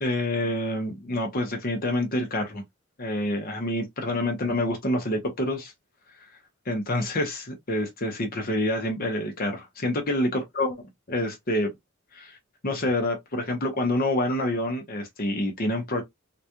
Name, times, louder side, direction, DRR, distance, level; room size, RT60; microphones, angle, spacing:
voice 1, 0.0-2.6 3.0-5.7 6.7-10.8 11.1-11.7 12.1-12.4 12.6-16.0, left 1 dB, 45° left, 1.0 m, -27 dB
3.9 x 2.3 x 2.9 m
head